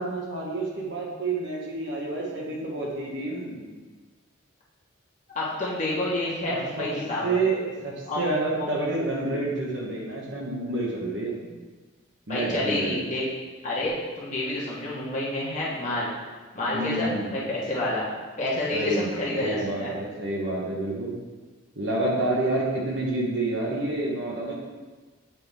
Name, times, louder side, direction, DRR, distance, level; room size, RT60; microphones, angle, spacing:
voice 1, 0.0-3.7 6.5-6.9 7.2-11.3 12.3-13.0 16.7-17.4 18.7-19.1 19.3-21.2 21.8-24.5, right 2 dB, 60° right, -3 dB, 1.3 m, -28 dB
voice 2, 5.3-7.4 8.1-8.2 8.5-8.7 12.3-13.2 13.6-16.1 16.5-18.1 18.4-19.9, left 1 dB, 40° left, -7 dB, 1.4 m, -29 dB
8.8 x 3.6 x 3.5 m, 1.4 s
head